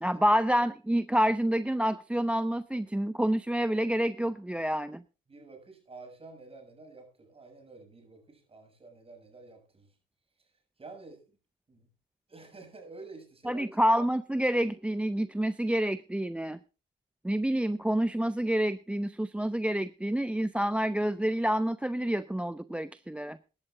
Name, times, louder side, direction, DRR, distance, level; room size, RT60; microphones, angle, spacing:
voice 1, 0.0-5.0 13.5-16.6 17.2-23.4, equal, 5° right, 14 dB, 0.5 m, -28 dB
voice 2, 5.3-9.9 10.4-10.5 10.8-11.2 11.7-11.9 12.3-13.6, right 3 dB, 30° right, 4 dB, 7.3 m, -49 dB
16.0 x 11.5 x 3.8 m, 0.34 s
cardioid pair, 90°, 20 cm